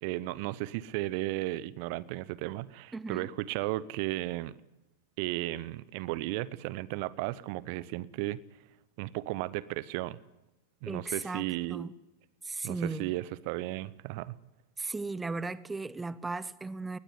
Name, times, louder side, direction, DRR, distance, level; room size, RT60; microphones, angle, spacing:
voice 1, 0.0-4.5 5.2-8.4 9.0-10.2 10.8-11.9 12.6-14.4, right 17 dB, 45° right, 0.8 m, -34 dB
voice 2, 2.9-3.3 10.9-11.9 12.4-13.1 14.8-17.0, right 3 dB, 10° right, 0.9 m, -36 dB
22.0 x 19.5 x 9.6 m
figure-of-eight pair, 90°, 0 cm